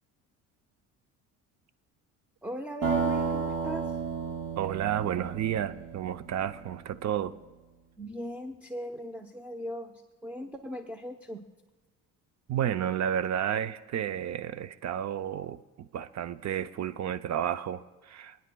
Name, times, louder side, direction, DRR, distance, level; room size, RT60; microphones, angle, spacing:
voice 1, 2.4-4.0 8.0-11.4, equal, 5° right, 6 dB, 0.8 m, -39 dB
sound 1, 2.8-6.6, right 5 dB, 65° right, 4.9 m, -32 dB
voice 2, 4.6-7.3 12.5-18.4, right 10 dB, 50° right, 13 dB, 0.6 m, -31 dB
28.0 x 9.5 x 2.3 m, 1.2 s
supercardioid pair, 85°, 37 cm